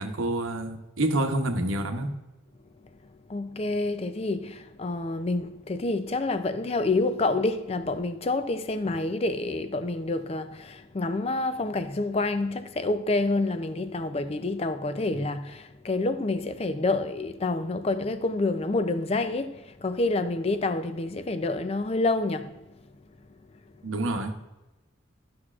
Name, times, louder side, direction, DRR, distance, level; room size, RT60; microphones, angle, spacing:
voice 1, 0.0-2.1 23.8-24.5, right 1 dB, 75° right, 0.9 m, -28 dB
voice 2, 3.3-22.6, left 2 dB, 30° left, 0.4 m, -28 dB
12.0 x 6.1 x 2.4 m
head